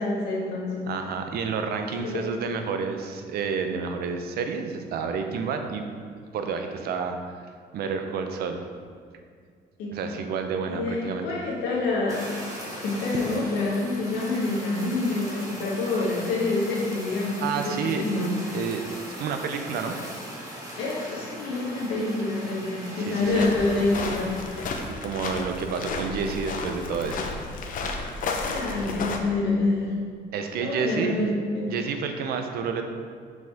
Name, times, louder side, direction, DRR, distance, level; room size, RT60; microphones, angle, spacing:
voice 1, 0.0-0.9 2.0-2.3 9.8-9.9 10.7-12.3 12.8-18.4 20.8-24.9 28.5-30.0 30.6-31.7, left 2 dB, 85° left, -4 dB, 1.6 m, -27 dB
voice 2, 0.9-5.9 6.3-7.2 7.7-8.6 9.9-11.3 17.4-18.0 18.5-20.0 23.0-23.5 24.8-27.2 30.3-31.2 31.7-32.8, right 6 dB, 65° right, 5 dB, 0.6 m, -30 dB
Fire, 12.1-24.9, equal, 20° right, 1.5 m, -39 dB
sound 1, 23.2-29.2, left 3 dB, 55° left, 0.7 m, -32 dB
5.8 x 5.1 x 3.5 m, 2.1 s
cardioid pair, 110°, 17 cm